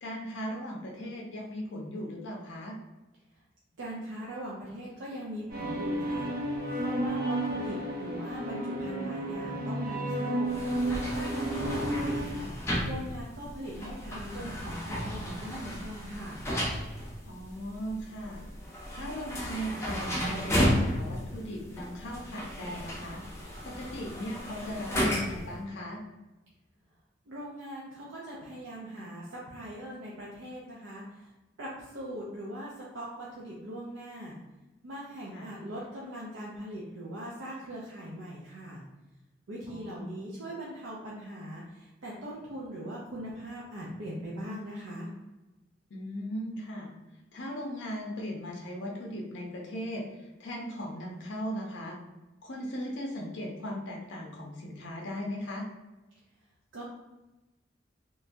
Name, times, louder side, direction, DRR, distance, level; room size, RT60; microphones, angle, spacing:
voice 1, 0.0-2.8 17.2-18.4 18.9-23.2 23.6-26.0 35.3-35.5 39.7-40.2 45.9-46.9 47.3-52.0 52.4-55.6, equal, 75° left, -1 dB, 0.6 m, -38 dB
voice 2, 3.8-12.5 12.9-16.5 27.3-31.3 31.6-34.4 34.8-38.8 39.5-45.1 56.7-56.8, equal, 90° right, -5 dB, 0.5 m, -41 dB
sound 1, 5.5-12.3, right 1 dB, 55° right, 0.8 m, -32 dB
sound 2, 10.5-25.5, equal, 15° left, 0.5 m, -34 dB
3.1 x 2.2 x 2.5 m, 1.1 s
head